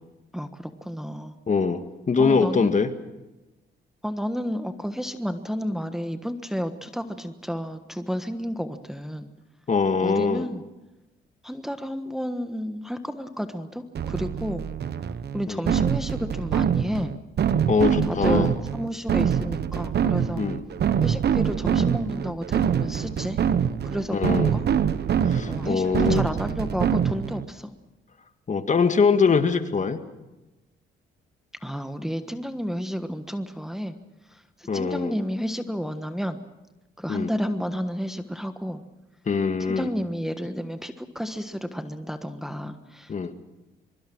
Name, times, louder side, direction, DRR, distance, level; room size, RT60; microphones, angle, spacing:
voice 1, 0.3-1.3 2.2-2.7 4.0-9.3 10.0-10.6 11.4-14.6 15.3-17.1 18.0-20.4 21.0-23.4 23.8-24.6 25.5-27.8 31.6-34.0 34.3-36.4 37.0-38.8 39.7-43.3, equal, ahead, 8 dB, 1.4 m, -31 dB
voice 2, 1.5-2.9 9.7-10.5 15.5-15.6 17.7-18.5 20.4-20.6 24.1-24.5 25.2-26.2 28.5-30.0 34.7-35.1 37.1-37.3 39.3-39.9 43.1-43.3, left 5 dB, 40° left, 9 dB, 1.8 m, -23 dB
sound 1, 13.9-27.4, right 8 dB, 55° right, 1.1 m, -24 dB
24.0 x 23.5 x 6.2 m, 1.0 s
cardioid pair, 90°, 20 cm